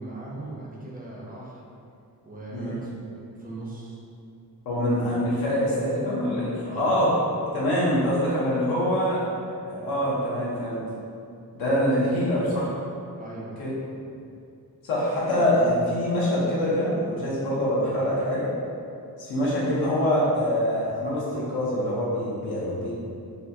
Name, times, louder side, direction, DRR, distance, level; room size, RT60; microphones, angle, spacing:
voice 1, 0.0-1.6 2.2-4.0 6.6-7.0 13.2-13.6, right 2 dB, 25° right, -5 dB, 0.5 m, -39 dB
voice 2, 4.6-7.1 7.5-9.2 9.6-10.8 11.5-12.7 13.6-13.7 14.8-18.5 19.2-22.9, equal, 80° left, -7 dB, 1.0 m, -24 dB
4.2 x 2.2 x 2.6 m, 2.5 s
wide cardioid pair, 150°, 36 cm